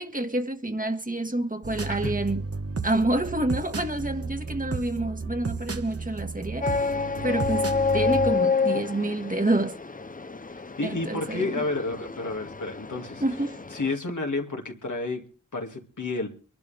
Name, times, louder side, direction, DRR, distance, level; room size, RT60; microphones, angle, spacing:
voice 1, 0.0-2.5 2.8-6.9 7.2-9.8 10.8-11.6 13.2-13.6, right 1 dB, 25° right, 1.5 m, -28 dB
sound 1, 1.6-8.3, right 4 dB, 50° right, 1.1 m, -33 dB
sound 2, 6.6-14.0, left 4 dB, 30° left, 0.7 m, -29 dB
voice 2, 10.5-13.2 13.7-15.3 15.5-16.3, left 3 dB, 80° left, 2.3 m, -31 dB
24.5 x 11.5 x 3.5 m
wide cardioid pair, 45°, 30 cm